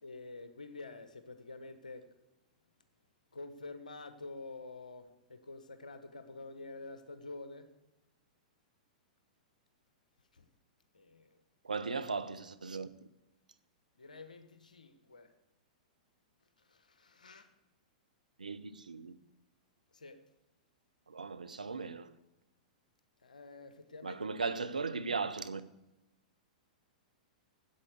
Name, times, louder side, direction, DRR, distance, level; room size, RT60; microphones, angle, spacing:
voice 1, 0.0-2.1 3.3-7.7 10.3-10.5 10.9-11.4 14.0-15.3 16.6-17.5 19.9-20.2 23.2-24.4, left 3 dB, 80° left, 1.0 m, -48 dB
voice 2, 11.6-12.9 18.4-19.1 21.1-22.1 24.0-25.6, right 4 dB, 85° right, 0.6 m, -37 dB
8.5 x 8.2 x 6.7 m
figure-of-eight pair, 105°, 4 cm